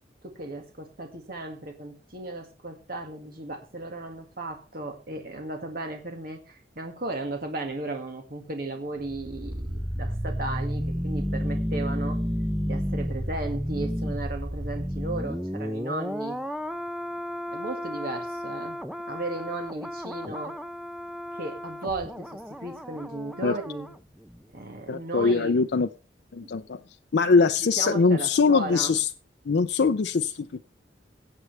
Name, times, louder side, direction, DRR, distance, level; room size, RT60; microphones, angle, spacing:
voice 1, 0.2-12.2 12.7-16.4 17.5-18.8 19.1-20.5 21.3-23.9 24.5-25.6 26.4-26.6 27.3-28.9, right 2 dB, 55° right, 1.9 m, -35 dB
sound 1, 9.0-23.9 24.2-24.4, equal, 5° right, 0.6 m, -32 dB
voice 2, 24.9-25.9 26.3-26.8 27.1-29.1 29.5-30.6, left 4 dB, 65° left, 0.5 m, -22 dB
18.0 x 7.8 x 3.4 m
head